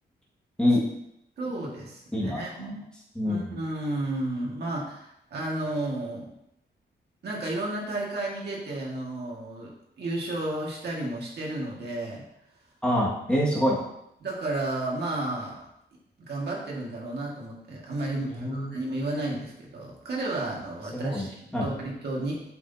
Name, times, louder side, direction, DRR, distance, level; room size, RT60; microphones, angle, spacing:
voice 1, 1.4-2.9 3.2-6.3 7.2-12.3 14.2-15.7 16.2-22.4, right 2 dB, 65° right, -3 dB, 1.9 m, -32 dB
voice 2, 2.1-2.8 3.2-3.6 12.8-13.9 18.2-18.8 20.9-21.7, left 1 dB, 5° left, -6 dB, 1.9 m, -26 dB
7.9 x 5.9 x 2.8 m, 0.78 s
wide cardioid pair, 160°, 18 cm